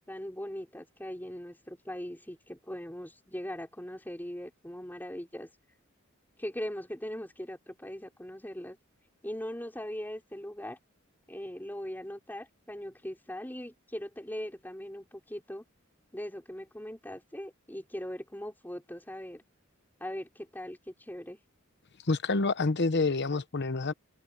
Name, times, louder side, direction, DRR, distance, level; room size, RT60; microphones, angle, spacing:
voice 1, 0.1-5.5 6.4-8.8 9.2-10.8 11.3-15.6 16.1-19.4 20.0-21.4, equal, 10° left, 4.4 m, -40 dB
voice 2, 22.1-23.9, left 3 dB, 55° left, 0.9 m, -27 dB
open air
head